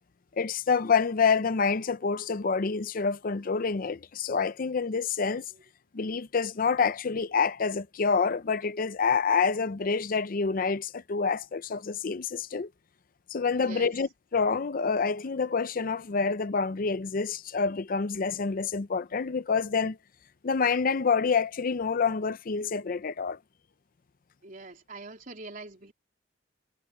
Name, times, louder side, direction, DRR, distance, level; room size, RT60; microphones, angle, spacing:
voice 1, 0.4-5.5 5.9-12.7 13.3-20.0 20.4-23.4, left 5 dB, 50° left, 0.5 m, -27 dB
voice 2, 13.5-13.9 24.4-25.9, right 3 dB, 45° right, 3.5 m, -43 dB
head